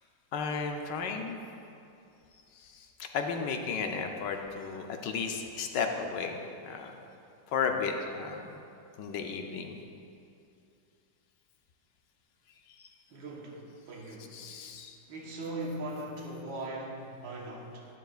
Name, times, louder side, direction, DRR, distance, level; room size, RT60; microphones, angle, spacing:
voice 1, 0.3-1.4 2.6-6.4 6.6-6.9 7.5-8.6 9.0-9.8 14.3-15.0, left 5 dB, 75° left, 4 dB, 1.3 m, -34 dB
voice 2, 13.1-14.4 15.1-17.9, right 1 dB, 85° right, -1 dB, 1.9 m, -39 dB
11.5 x 10.0 x 2.4 m, 2.6 s
omnidirectional pair, 2.0 m